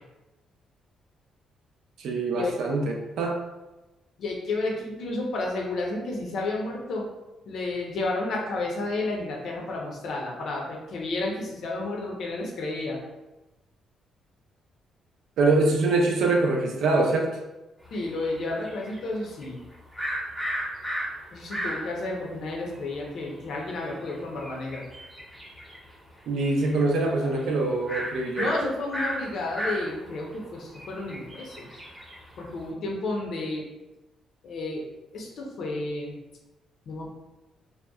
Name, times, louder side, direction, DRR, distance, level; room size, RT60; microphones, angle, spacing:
voice 1, 2.0-3.4 15.4-17.3 26.3-28.5, right 2 dB, 75° right, 0 dB, 0.5 m, -24 dB
voice 2, 4.2-7.1 7.5-13.0 17.9-19.6 21.3-24.8 28.4-31.7 32.4-33.6 34.4-34.8 35.1-36.1 36.9-37.1, left 2 dB, 65° left, -1 dB, 0.6 m, -31 dB
sound 1, 17.9-22.1 22.5-22.6 22.8-25.9 26.2-27.1 27.3-27.4 27.9-32.6, equal, ahead, 0.8 m, -35 dB
2.7 x 2.1 x 2.3 m, 1.0 s
cardioid pair, 90°, 0 cm